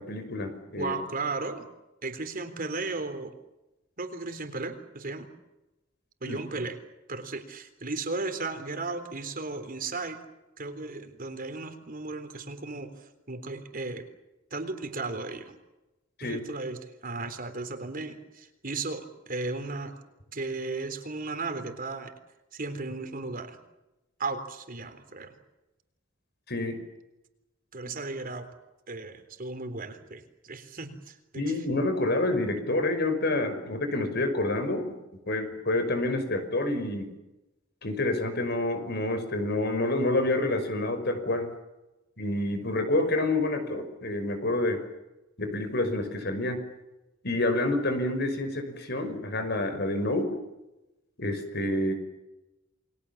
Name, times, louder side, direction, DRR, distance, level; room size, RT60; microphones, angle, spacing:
voice 1, 0.0-0.9 6.3-6.4 16.2-16.4 26.5-26.8 31.4-35.0 35.3-37.1 37.8-41.5 42.2-44.8 45.4-46.6 47.2-50.3 51.2-51.9, left 2 dB, 55° left, 8 dB, 5.6 m, -28 dB
voice 2, 0.8-1.7 2.0-3.3 4.0-5.3 6.2-6.8 7.1-10.2 10.6-14.1 14.5-15.6 16.2-20.0 20.3-22.1 22.5-23.6 24.2-25.3 27.7-28.5 28.9-31.6, right 3 dB, 45° right, 8 dB, 3.7 m, -35 dB
30.0 x 22.0 x 7.4 m, 0.98 s
head